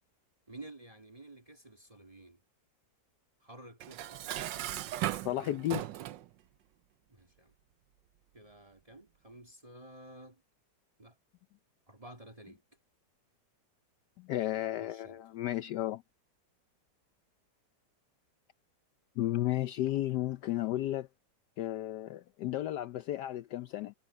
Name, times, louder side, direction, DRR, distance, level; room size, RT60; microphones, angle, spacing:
voice 1, 0.5-2.4 3.4-4.7 7.1-7.5 8.3-10.4 11.0-11.2 11.9-12.6 14.8-15.2, right 2 dB, 20° right, 2.8 m, -52 dB
Dishes pots and pans, 3.8-6.3, right 13 dB, 85° right, 1.4 m, -37 dB
voice 2, 5.2-5.8 14.2-16.0 19.2-21.1 21.6-23.9, left 14 dB, 70° left, 1.1 m, -33 dB
omnidirectional pair, 2.0 m